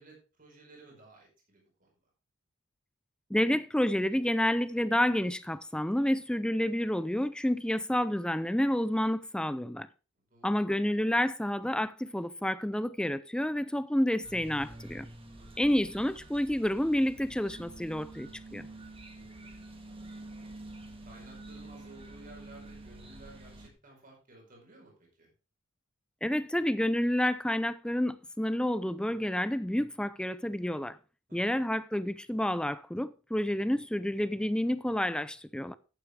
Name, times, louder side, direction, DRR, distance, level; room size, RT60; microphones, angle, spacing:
voice 1, 0.0-1.9 10.2-10.7 15.4-15.7 19.1-20.2 21.0-25.3 31.3-31.6, right 2 dB, 45° right, 5.1 m, -55 dB
voice 2, 3.3-9.9 10.4-15.1 15.6-18.7 26.2-31.0 31.3-35.7, left 1 dB, 5° left, 0.4 m, -29 dB
sound 1, 14.2-23.7, right 2 dB, 30° right, 1.8 m, -48 dB
11.5 x 9.3 x 3.3 m
head